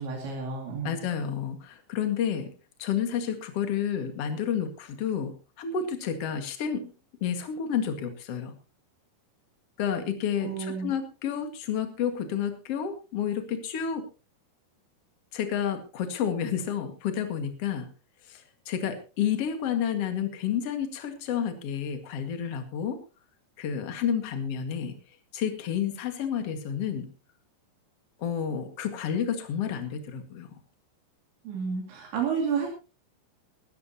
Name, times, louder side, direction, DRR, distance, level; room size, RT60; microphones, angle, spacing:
voice 1, 0.0-1.0 10.4-10.9 31.5-32.7, right 6 dB, 75° right, 0 dB, 4.7 m, -31 dB
voice 2, 0.8-2.5 2.8-6.8 7.2-8.6 9.8-14.0 15.3-17.9 18.3-23.0 23.6-25.0 25.3-27.1 28.2-30.5, left 8 dB, 50° left, 7 dB, 2.0 m, -30 dB
20.5 x 13.5 x 2.9 m, 0.32 s
omnidirectional pair, 5.3 m